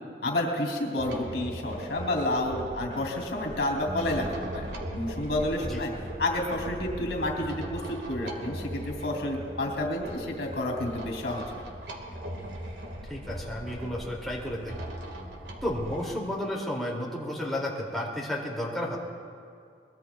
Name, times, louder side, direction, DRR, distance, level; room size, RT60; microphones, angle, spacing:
voice 1, 0.2-5.9 6.2-11.6, left 1 dB, 80° left, 1 dB, 2.8 m, -30 dB
sound 1, 1.0-16.1, right 1 dB, 90° right, 1.8 m, -39 dB
voice 2, 13.1-14.9 15.6-19.0, left 1 dB, ahead, -5 dB, 2.4 m, -32 dB
22.5 x 21.5 x 2.3 m, 2.4 s
head